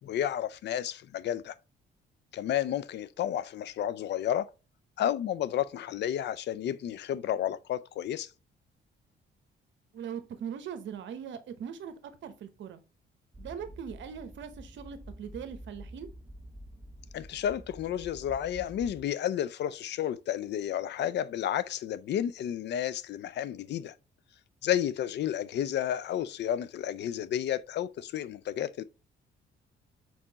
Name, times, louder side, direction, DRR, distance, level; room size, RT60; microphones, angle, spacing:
voice 1, 0.0-1.5 2.3-4.5 5.0-8.3 17.1-23.9 24.6-28.8, left 10 dB, 60° left, 0.4 m, -31 dB
voice 2, 9.9-11.9 12.2-12.8 13.4-16.1, right 8 dB, 70° right, 0.8 m, -40 dB
sound 1, 13.3-19.0, equal, 15° right, 0.5 m, -48 dB
4.4 x 4.2 x 2.8 m
cardioid pair, 90°, 20 cm